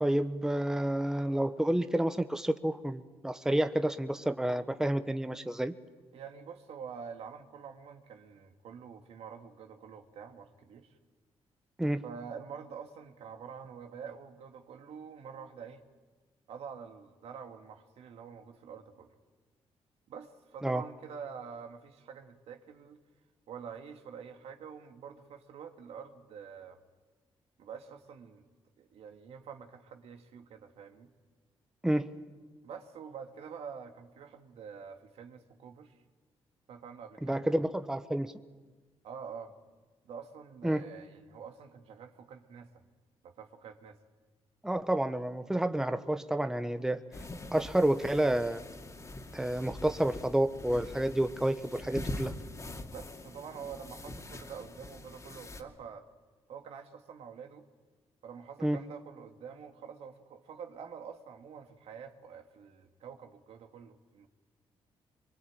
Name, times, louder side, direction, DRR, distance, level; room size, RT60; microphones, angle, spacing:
voice 1, 0.0-5.7 11.8-12.0 20.6-20.8 31.8-32.1 37.2-38.3 40.6-40.8 44.6-47.0 47.5-48.6 49.3-52.3 58.6-58.8, right 1 dB, 5° right, 10 dB, 1.0 m, -29 dB
voice 2, 6.1-11.0 12.0-15.8 16.5-19.1 20.1-23.0 23.5-26.8 27.6-28.5 28.8-31.1 32.6-36.0 36.7-37.5 39.0-39.6 40.0-42.8 43.2-44.0 52.8-56.1 56.5-57.7 58.2-64.3, right 6 dB, 75° right, 5 dB, 2.2 m, -47 dB
sound 1, 47.1-55.6, left 2 dB, 30° left, 2.5 m, -44 dB
24.5 x 23.0 x 8.8 m, 1.3 s
cardioid pair, 95°, 10 cm